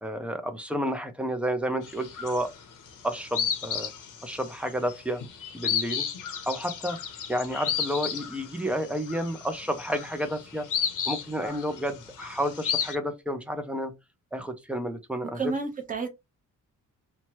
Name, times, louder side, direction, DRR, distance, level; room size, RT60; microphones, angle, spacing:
voice 1, 0.0-2.5 3.0-3.9 4.2-5.2 5.5-6.1 6.5-7.0 7.3-10.7 11.1-13.9 14.3-15.5, equal, 5° right, 0.4 m, -31 dB
sound 1, 1.8-2.7 3.0-13.0, left 7 dB, 80° left, 0.7 m, -33 dB
voice 2, 15.3-16.1, right 4 dB, 25° right, 0.8 m, -30 dB
3.0 x 2.1 x 2.8 m
wide cardioid pair, 155°, 31 cm